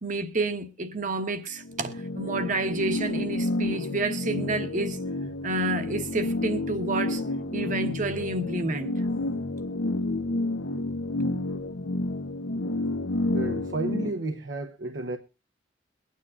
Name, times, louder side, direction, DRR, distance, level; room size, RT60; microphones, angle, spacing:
voice 1, 0.0-5.0 5.4-7.2 7.5-8.9, right 2 dB, 40° right, 1.2 m, -29 dB
sound 1, 1.6-14.1, left 2 dB, 85° left, 0.9 m, -30 dB
voice 2, 13.3-15.2, right 2 dB, 70° right, 0.9 m, -32 dB
22.5 x 9.5 x 2.4 m
head